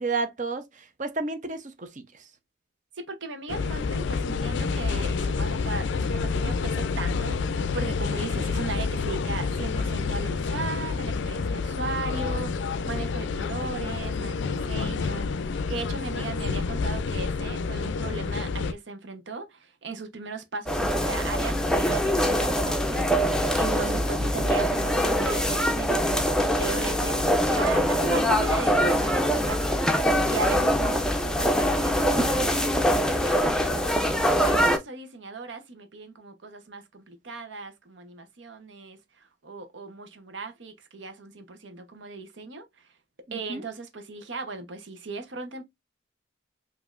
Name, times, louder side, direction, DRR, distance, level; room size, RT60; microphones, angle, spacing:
voice 1, 0.0-2.3 23.7-24.1 30.4-30.6 43.3-43.6, right 3 dB, 40° right, 0.7 m, -32 dB
voice 2, 2.9-33.9 34.4-42.9 43.3-45.6, right 3 dB, 75° right, 0.9 m, -37 dB
sound 1, 3.5-18.7, left 4 dB, 70° left, 0.4 m, -28 dB
sound 2, 20.7-34.8, equal, 5° left, 0.5 m, -23 dB
5.1 x 2.7 x 2.4 m
head